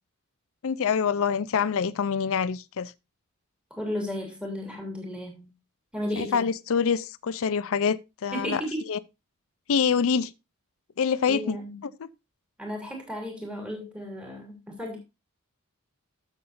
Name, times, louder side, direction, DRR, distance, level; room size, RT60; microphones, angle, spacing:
voice 1, 0.6-2.9 6.2-8.6 8.9-9.0 9.7-10.3 11.0-11.6 12.0-12.1, left 6 dB, 65° left, 0.5 m, -25 dB
voice 2, 3.7-5.5 5.9-6.5 8.3-8.8 11.3-11.8 12.6-15.0, equal, 5° right, 2.8 m, -34 dB
12.5 x 7.3 x 2.5 m
head